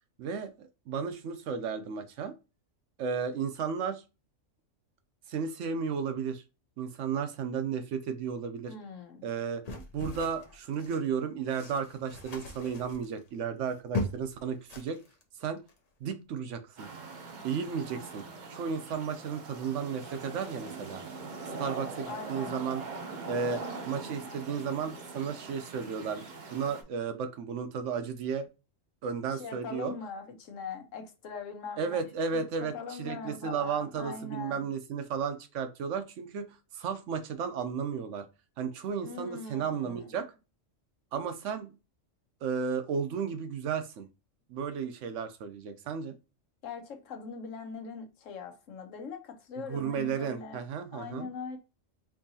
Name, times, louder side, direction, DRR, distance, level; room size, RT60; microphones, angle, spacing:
voice 1, 0.2-2.3 3.0-4.0 5.3-6.4 6.8-8.7 9.2-9.6 9.9-15.0 15.4-15.6 16.0-16.9 17.4-18.2 18.5-21.0 21.6-22.8 23.3-26.3 26.5-28.5 29.0-29.9 31.8-38.3 38.6-40.3 41.1-41.8 42.4-44.1 44.5-46.2 49.7-51.3, right 6 dB, 70° right, 0.9 m, -34 dB
voice 2, 8.7-9.2 22.1-22.6 29.3-32.4 32.7-34.6 39.0-40.2 46.6-50.6 50.9-51.6, left 5 dB, 80° left, 1.1 m, -41 dB
sound 1, 9.6-11.1 11.4-14.3 14.6-15.2 15.6-15.8, left 2 dB, 40° left, 0.7 m, -39 dB
sound 2, 16.8-26.8, right 3 dB, 45° right, 0.7 m, -42 dB
4.6 x 2.8 x 2.7 m
omnidirectional pair, 1.3 m